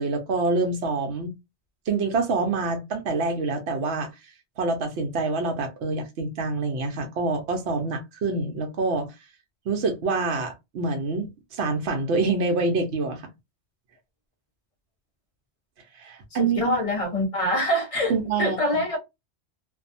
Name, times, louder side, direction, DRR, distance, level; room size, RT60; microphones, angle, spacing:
voice 1, 0.0-1.3 1.9-4.1 4.6-9.1 9.7-13.2 16.0-16.8 18.1-18.6, right 3 dB, 70° right, 0.9 m, -26 dB
voice 2, 16.4-19.0, left 1 dB, 35° left, 0.8 m, -25 dB
2.5 x 2.2 x 2.6 m
omnidirectional pair, 1.2 m